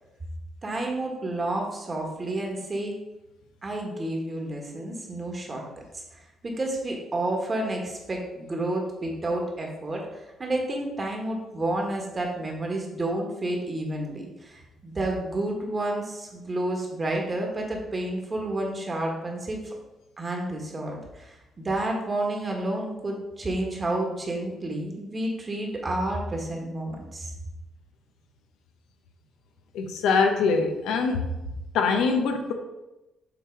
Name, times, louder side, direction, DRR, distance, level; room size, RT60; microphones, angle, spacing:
voice 1, 0.6-3.0 3.6-5.6 6.4-19.7 20.2-27.3, right 1 dB, 30° right, 1 dB, 1.6 m, -30 dB
voice 2, 29.7-31.4 31.7-32.5, left 4 dB, 85° left, 5 dB, 0.8 m, -23 dB
7.4 x 3.2 x 4.7 m, 0.97 s
cardioid pair, 90°, 0 cm